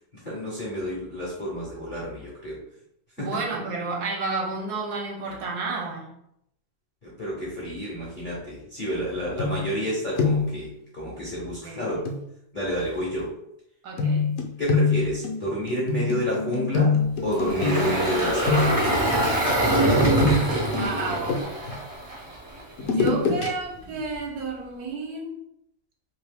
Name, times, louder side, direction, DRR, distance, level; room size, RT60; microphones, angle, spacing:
voice 1, 0.2-2.6 3.2-3.4 7.0-12.1 12.5-13.3 14.6-17.0 17.2-18.8, equal, 50° left, -6 dB, 0.6 m, -29 dB
voice 2, 3.2-6.1 11.6-12.1 13.8-14.3 20.5-21.5 22.8-25.4, right 3 dB, 70° right, -1 dB, 1.2 m, -31 dB
sound 1, 9.4-9.9 10.2-10.6 12.1-12.2 14.0-18.1 18.4-19.0 19.9-21.8 22.8-23.5 23.9-24.0, left 4 dB, 70° left, 0.9 m, -25 dB
Engine, 17.3-22.6, right 1 dB, 50° right, 0.4 m, -24 dB
2.9 x 2.7 x 3.3 m, 0.76 s
omnidirectional pair, 1.8 m